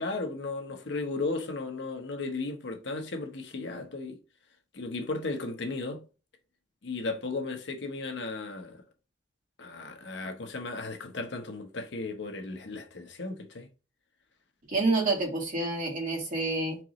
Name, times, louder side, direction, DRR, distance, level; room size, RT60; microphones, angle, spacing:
voice 1, 0.0-4.2 4.7-6.0 6.8-8.8 9.6-13.7, left 3 dB, 70° left, 0.9 m, -35 dB
voice 2, 14.7-16.8, right 3 dB, 45° right, 1.8 m, -28 dB
4.7 x 2.9 x 3.6 m
head